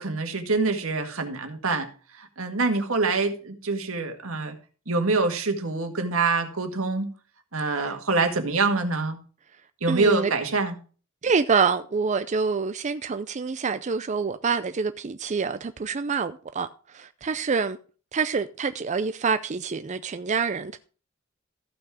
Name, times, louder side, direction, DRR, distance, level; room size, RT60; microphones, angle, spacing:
voice 1, 0.0-4.5 4.9-7.1 7.5-9.2 9.8-10.7, right 3 dB, 80° right, 1.9 m, -25 dB
voice 2, 9.9-10.3 11.2-17.8 18.1-20.8, right 5 dB, 35° right, 0.5 m, -26 dB
14.5 x 6.0 x 4.9 m
head